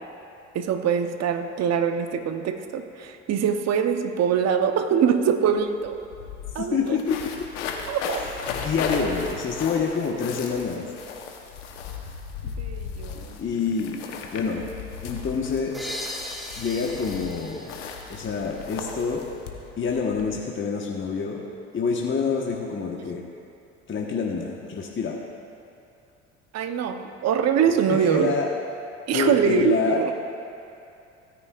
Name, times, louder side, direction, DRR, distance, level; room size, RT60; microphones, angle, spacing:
voice 1, 0.5-6.1 6.5-7.0 7.9-8.2 12.4-13.4 26.5-28.4 29.1-30.1, right 7 dB, 45° right, 7 dB, 0.9 m, -24 dB
sound 1, 5.5-5.6 5.8-20.3, left 6 dB, 85° left, 1.1 m, -36 dB
voice 2, 6.5-7.5 8.2-10.8 13.4-14.0 14.3-14.7 15.0-15.9 16.6-17.8 18.1-19.2 19.8-21.4 21.7-23.2 23.9-25.2 27.7-28.5 29.1-30.1, left 5 dB, 35° left, -1 dB, 1.4 m, -27 dB
sound 2, 15.7-19.3, equal, ahead, 1.7 m, -39 dB
16.5 x 9.7 x 2.5 m, 2.7 s
hypercardioid pair, 70°, 35 cm